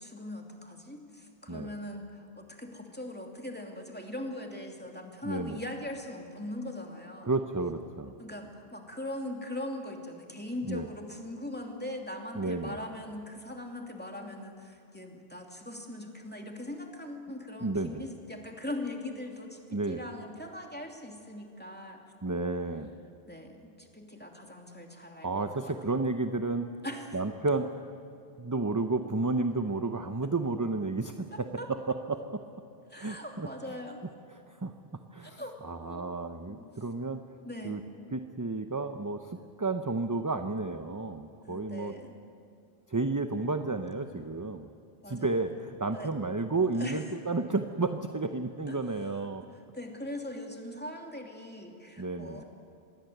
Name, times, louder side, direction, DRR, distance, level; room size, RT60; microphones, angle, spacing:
voice 1, 0.0-7.3 8.2-22.0 23.3-25.7 26.8-27.1 31.3-31.7 32.9-34.0 35.2-36.0 36.4-36.7 37.4-37.9 41.4-42.2 45.0-45.4 45.9-46.1 46.7-47.0 48.7-48.8 49.4-52.4, left 1 dB, 10° left, 2 dB, 2.7 m, -41 dB
voice 2, 5.2-5.6 7.2-8.1 10.7-10.9 12.4-12.8 17.6-18.0 19.7-20.0 22.2-22.9 25.2-26.7 27.1-27.9 28.4-32.2 33.0-33.5 34.5-34.7 35.1-37.2 37.6-37.8 38.1-41.9 42.9-44.7 45.1-49.5 52.0-52.4, right 3 dB, 20° right, 7 dB, 0.7 m, -32 dB
26.5 x 21.5 x 8.0 m, 2.5 s
omnidirectional pair, 1.1 m